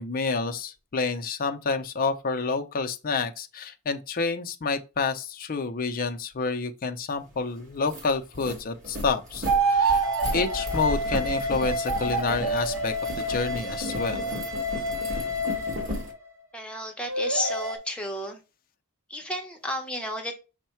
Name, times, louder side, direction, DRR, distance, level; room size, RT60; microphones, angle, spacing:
voice 1, 0.0-10.0 10.3-12.9 13.3-14.2, left 4 dB, 40° left, 0.5 m, -28 dB
sound 1, 7.3-7.4 7.7-16.1, equal, 40° right, 1.5 m, -35 dB
sound 2, 9.5-16.2 17.1-17.8, right 2 dB, 60° right, 0.8 m, -28 dB
voice 2, 16.5-18.4 19.1-20.3, left 1 dB, 5° left, 0.8 m, -32 dB
5.4 x 2.2 x 4.3 m
head